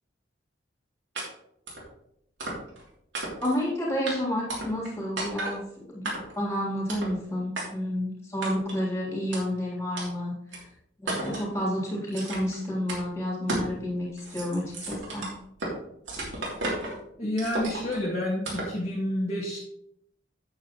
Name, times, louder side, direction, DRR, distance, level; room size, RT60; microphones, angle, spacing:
sound 1, 1.2-1.3 1.7-1.9 2.4-2.8 3.1-3.6 4.1-4.2 4.5-4.9 5.2-5.6 6.0-6.4 6.9-7.1 7.6-7.7 8.4-8.8 9.3-9.4 10.0-10.1 10.5-10.6 11.1-11.5 12.1-12.6 12.9-13.0 13.5-13.7 14.1-15.7 16.1-17.0 17.4-18.0 18.4-18.8, right 2 dB, 75° right, 3.1 m, -33 dB
voice 1, 3.4-10.3 11.0-15.3, equal, 15° left, -4 dB, 3.2 m, -30 dB
voice 2, 17.2-19.6, left 1 dB, 35° left, -7 dB, 1.8 m, -29 dB
8.9 x 8.6 x 3.1 m, 0.74 s
head